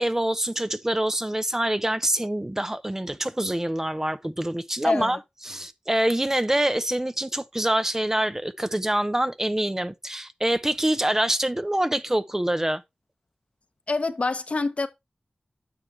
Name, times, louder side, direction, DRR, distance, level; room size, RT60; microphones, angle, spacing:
voice 1, 0.0-5.2 5.4-12.8, right 1 dB, 20° right, 0.6 m, -25 dB
voice 2, 4.8-5.2 13.9-14.9, left 3 dB, 55° left, 0.9 m, -25 dB
9.5 x 6.3 x 3.2 m
wide cardioid pair, 50°, 3 cm